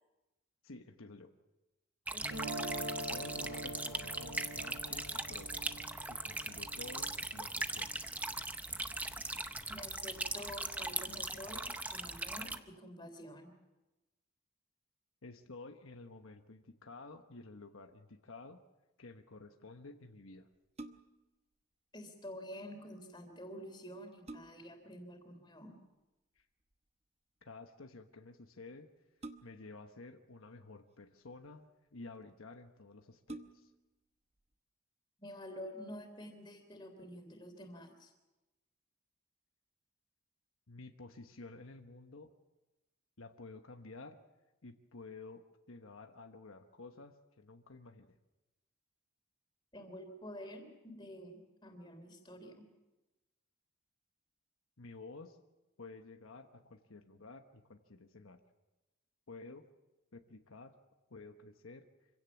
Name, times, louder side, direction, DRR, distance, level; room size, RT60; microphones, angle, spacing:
voice 1, 0.6-1.3 3.0-5.7 6.1-7.9 15.2-18.6 19.0-20.5 26.4-26.5 27.4-28.9 29.4-33.7 40.7-42.3 43.2-44.2 44.6-48.2 54.8-55.4 55.8-58.4 59.3-59.6 60.1-60.7 61.1-61.9, left 3 dB, 80° left, 6 dB, 1.2 m, -52 dB
voice 2, 2.1-2.4 9.7-13.5 21.9-25.8 35.2-38.1 49.7-52.6, equal, 20° left, 5 dB, 3.4 m, -49 dB
sound 1, 2.1-12.6, right 2 dB, 5° right, 0.6 m, -40 dB
sound 2, 2.2-8.3, right 1 dB, 50° right, 4.5 m, -45 dB
sound 3, 20.5-21.3 23.3-23.4 23.9-24.8 26.4-26.7 29.2-29.8 30.8-31.5 32.2-32.3 32.6-32.7 33.2-33.9 34.4-34.5, right 2 dB, 30° right, 0.9 m, -50 dB
25.5 x 16.5 x 7.2 m, 1.1 s
head